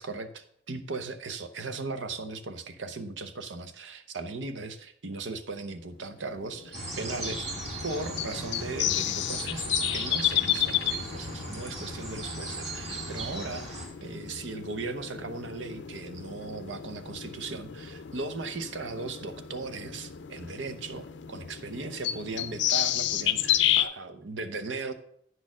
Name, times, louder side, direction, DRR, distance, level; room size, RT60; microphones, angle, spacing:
voice 1, 0.0-7.5 7.8-24.9, right 3 dB, 85° right, 10 dB, 0.8 m, -37 dB
sound 1, 6.1-23.8, left 12 dB, 75° left, 0.4 m, -32 dB
sound 2, 6.7-13.9, right 1 dB, 35° right, 1.9 m, -37 dB
9.4 x 4.3 x 6.1 m, 0.68 s
head